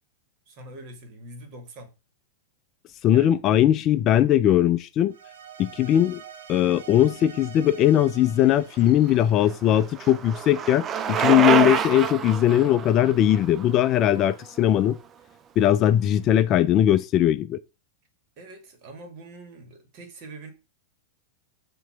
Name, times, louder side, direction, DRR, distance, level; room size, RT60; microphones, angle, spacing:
voice 1, 0.5-1.9 3.1-3.3 18.4-20.5, right 2 dB, 45° right, 2.0 m, -43 dB
voice 2, 3.0-5.1 5.6-6.2 6.5-15.0 15.6-17.6, left 11 dB, 35° left, 0.4 m, -20 dB
sound 1, 5.1-10.4, right 8 dB, 75° right, 0.9 m, -46 dB
Bicycle, 8.9-14.9, right 8 dB, 25° right, 0.5 m, -27 dB
5.9 x 3.0 x 5.6 m
hypercardioid pair, 105°, 0 cm